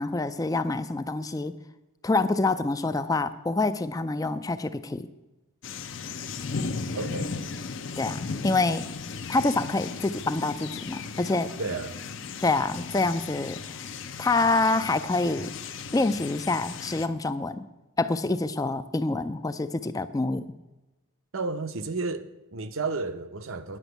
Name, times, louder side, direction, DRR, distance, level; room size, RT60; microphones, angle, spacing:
voice 1, 0.0-1.5 2.0-5.1 8.0-8.9 9.3-11.5 12.4-13.6 14.2-15.5 15.9-17.6 18.0-20.5, left 3 dB, 15° left, 0.3 m, -26 dB
sound 1, 5.6-17.1, left 4 dB, 60° left, 0.6 m, -36 dB
voice 2, 6.9-7.4 11.6-12.0 21.3-23.8, right 3 dB, 70° right, 0.7 m, -32 dB
9.9 x 6.2 x 7.9 m
head